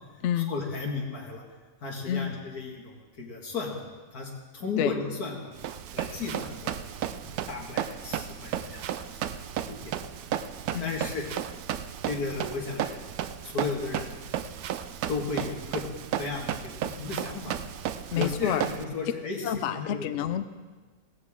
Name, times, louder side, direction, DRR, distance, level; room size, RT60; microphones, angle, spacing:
voice 1, 0.5-1.5 1.8-3.7 4.1-5.5 5.9-6.8 7.2-9.9 10.8-11.3 12.0-13.0 13.4-14.2 15.1-15.9 16.2-17.5 18.1-19.4 19.7-20.1, left 4 dB, 85° left, 0 dB, 2.5 m, -34 dB
voice 2, 2.0-2.4 4.8-5.0 10.7-11.0 18.1-18.7 19.4-20.6, left 10 dB, 65° left, 11 dB, 0.8 m, -29 dB
Run, 5.6-18.8, right 10 dB, 85° right, 1.1 m, -34 dB
16.5 x 15.5 x 3.7 m, 1.3 s
omnidirectional pair, 1.6 m